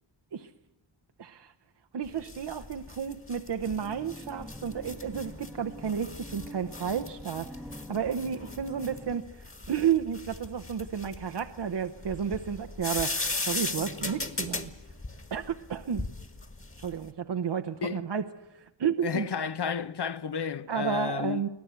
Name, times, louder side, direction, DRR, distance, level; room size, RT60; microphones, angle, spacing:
voice 1, 1.2-1.5 1.9-14.7 15.3-16.1 16.8-19.3 20.7-21.5, right 7 dB, 60° right, 1.0 m, -32 dB
sound 1, 2.0-17.1, left 3 dB, 25° left, 2.0 m, -38 dB
sound 2, 3.6-9.2, equal, ahead, 1.1 m, -46 dB
voice 2, 19.0-21.4, left 7 dB, 60° left, 1.0 m, -32 dB
24.5 x 17.0 x 8.2 m
wide cardioid pair, 80°, 47 cm